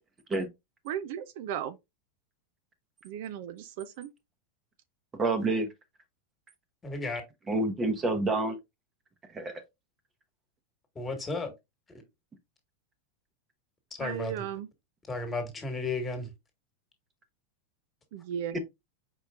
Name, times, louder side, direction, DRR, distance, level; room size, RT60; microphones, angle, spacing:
voice 1, 0.9-1.8 3.0-4.1 14.0-14.7 18.1-18.6, right 9 dB, 65° right, 0.5 m, -36 dB
voice 2, 5.1-5.7 7.5-8.6 9.3-9.6, right 2 dB, 25° right, 0.9 m, -28 dB
voice 3, 6.8-7.2 10.9-11.5 14.0-14.4 15.1-16.3, left 3 dB, 20° left, 1.6 m, -33 dB
4.6 x 4.3 x 2.4 m
hypercardioid pair, 110°, 0 cm